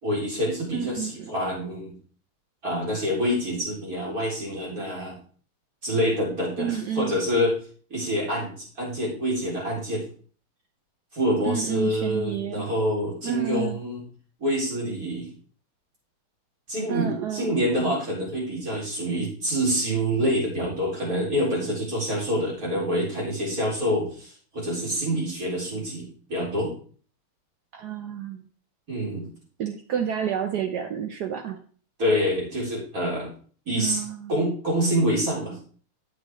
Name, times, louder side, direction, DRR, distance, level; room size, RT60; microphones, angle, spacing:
voice 1, 0.0-1.9 2.6-5.2 5.8-7.6 7.9-10.1 11.1-14.0 14.4-15.3 16.7-26.7 28.9-29.3 32.0-33.3 33.7-34.0 34.3-35.6, equal, 40° right, -4 dB, 4.3 m, -26 dB
voice 2, 0.7-1.3 6.6-7.2 11.5-12.7 13.2-13.8 16.9-17.5 27.7-28.4 29.6-31.6 33.8-34.4, right 8 dB, 75° right, 7 dB, 0.9 m, -30 dB
9.1 x 7.5 x 3.6 m, 0.42 s
omnidirectional pair, 2.4 m